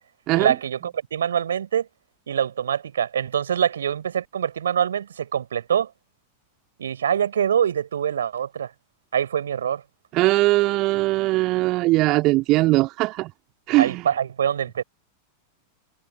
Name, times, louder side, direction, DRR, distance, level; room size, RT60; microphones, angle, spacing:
voice 1, 0.3-1.9 2.3-5.9 6.8-8.7 9.1-9.8 13.8-14.8, right 8 dB, 65° right, 4.8 m, -24 dB
voice 2, 10.1-13.3 13.7-14.1, right 20 dB, 40° right, 2.1 m, -20 dB
figure-of-eight pair, 90°, 0 cm